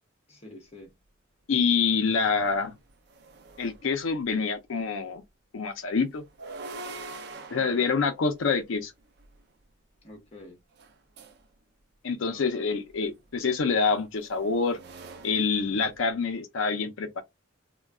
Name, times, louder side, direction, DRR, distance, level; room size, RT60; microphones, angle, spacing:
voice 1, 0.3-0.9 10.0-10.6 12.2-12.7 13.1-13.2, left 1 dB, 35° left, 1.0 m, -48 dB
voice 2, 1.5-2.8 3.6-5.2 5.5-6.2 7.5-8.9 12.0-14.8 15.2-17.2, left 5 dB, 90° left, 0.5 m, -26 dB
sound 1, 1.8-1.9 2.4-4.3 6.2-9.4 10.7-11.5 12.9-16.3, right 3 dB, 55° right, 0.5 m, -45 dB
2.3 x 2.2 x 3.5 m
head